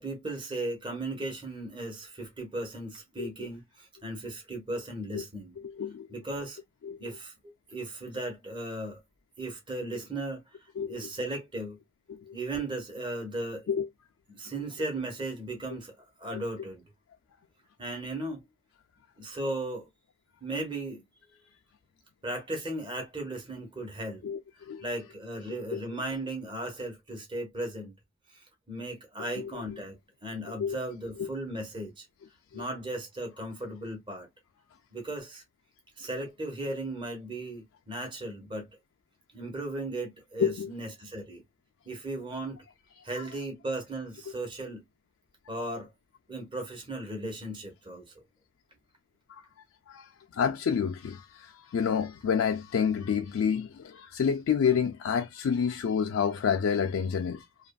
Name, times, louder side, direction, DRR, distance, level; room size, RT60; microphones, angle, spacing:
voice 1, 0.0-5.5 6.1-6.6 7.0-9.0 9.4-10.4 10.9-11.8 12.3-13.7 14.3-16.8 17.8-18.4 19.2-19.9 20.4-21.0 22.2-24.2 24.8-27.9 28.3-32.0 32.5-34.3 34.9-35.4 36.0-38.7 39.3-41.4 41.8-42.6 43.0-44.8 45.5-45.9 46.3-48.2, right 2 dB, 25° right, 0.9 m, -36 dB
voice 2, 5.6-6.1 6.8-7.0 10.8-11.0 12.1-12.4 13.7-13.9 24.2-24.8 25.5-25.8 29.4-29.5 30.6-30.8 31.2-31.3 32.5-32.6 40.4-40.7 49.3-49.5 49.9-57.5, left 7 dB, 70° left, 0.3 m, -29 dB
2.8 x 2.5 x 2.2 m
head